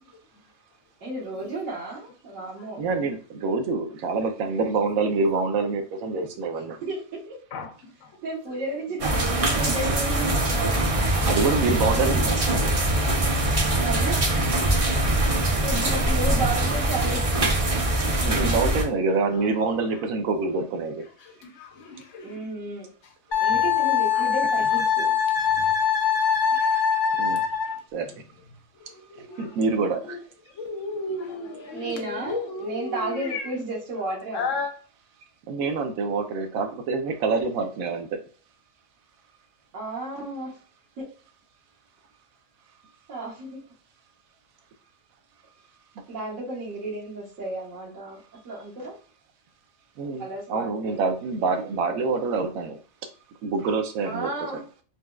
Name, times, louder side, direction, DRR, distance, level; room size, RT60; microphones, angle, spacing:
voice 1, 1.0-2.8 6.8-7.4 8.2-11.0 13.8-14.3 15.6-17.2 22.2-22.9 23.4-25.1 31.7-34.5 39.7-40.5 41.0-41.1 43.1-43.6 46.1-48.2 48.4-48.9 50.2-51.0 51.9-52.0 54.0-54.6, right 2 dB, 65° right, -7 dB, 1.5 m, -33 dB
voice 2, 2.8-6.8 11.1-12.8 18.2-21.1 25.6-25.7 27.2-27.4 27.9-28.1 29.2-30.2 35.5-38.2 50.0-52.8 53.4-54.3, right 4 dB, 85° right, 7 dB, 1.0 m, -26 dB
voice 3, 7.5-8.1 19.3-19.5 21.4-22.4 24.1-24.3 25.6-25.7 26.5-27.5 28.9-30.2 30.5-33.5 34.3-34.7, left 3 dB, 70° left, 3 dB, 1.0 m, -35 dB
sound 1, 9.0-18.8, right 1 dB, 40° right, 0.5 m, -23 dB
Wind instrument woodwind instrument, 23.3-27.8, left 7 dB, 50° left, 0.6 m, -22 dB
4.0 x 2.2 x 2.3 m, 0.40 s
omnidirectional pair, 1.4 m